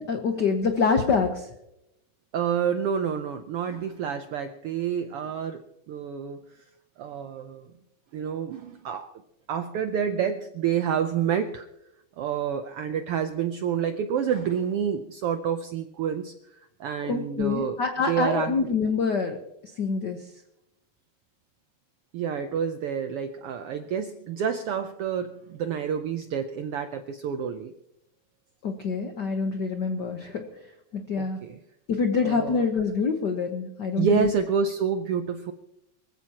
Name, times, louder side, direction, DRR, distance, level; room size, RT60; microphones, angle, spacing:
voice 1, 0.0-1.5 17.0-19.4 19.7-20.2 28.6-30.4 30.9-31.5 31.9-34.3, left 5 dB, 70° left, 5 dB, 1.0 m, -26 dB
voice 2, 2.3-6.4 7.0-7.6 8.1-9.1 9.5-11.7 12.2-16.3 16.8-17.8 18.1-18.8 22.1-27.7 31.2-31.6 32.2-32.6 34.0-35.5, right 7 dB, 80° right, 8 dB, 1.3 m, -28 dB
24.0 x 15.0 x 2.9 m, 0.83 s
omnidirectional pair, 3.4 m